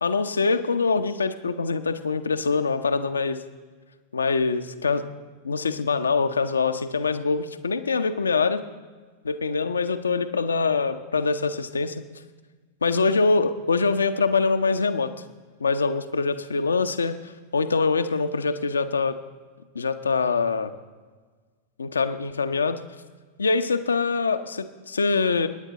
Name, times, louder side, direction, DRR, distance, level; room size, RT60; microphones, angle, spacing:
voice 1, 0.0-3.4 4.1-5.1 5.4-8.6 9.2-12.0 12.8-15.1 15.6-17.2 17.5-19.2 19.7-20.7 21.8-22.8 23.4-25.5, left 4 dB, 75° left, 9 dB, 0.7 m, -24 dB
23.0 x 10.0 x 3.9 m, 1.4 s
figure-of-eight pair, 90°, 0 cm